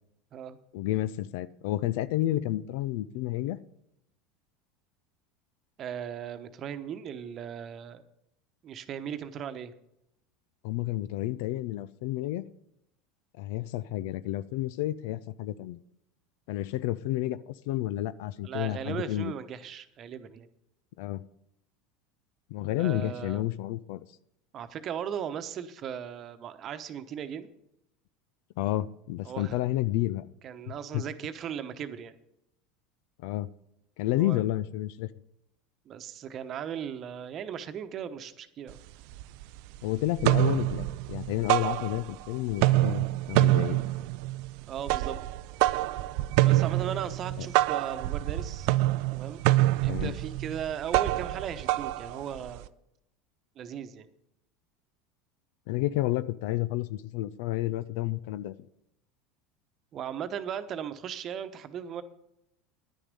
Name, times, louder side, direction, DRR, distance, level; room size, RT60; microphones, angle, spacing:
voice 1, 0.7-3.6 10.6-12.5 13.4-15.8 16.5-19.3 21.0-21.2 22.5-24.1 28.6-30.3 30.9-31.0 33.2-33.5 34.0-35.1 39.8-43.9 47.4-47.5 49.9-50.1 55.7-58.5, left 15 dB, 65° left, 0.4 m, -30 dB
voice 2, 5.8-8.0 8.6-9.7 18.4-20.5 22.8-23.5 24.5-27.5 29.2-29.6 30.4-32.1 34.2-34.4 35.9-38.8 44.7-45.2 46.4-48.7 49.1-49.4 49.8-52.7 53.6-54.1 59.9-62.0, right 8 dB, 45° right, 1.0 m, -37 dB
sound 1, 38.7-38.8 39.1-39.8 40.1-42.3 42.5-52.7, right 17 dB, 65° right, 0.4 m, -26 dB
10.5 x 10.0 x 5.3 m
hypercardioid pair, 80°, 0 cm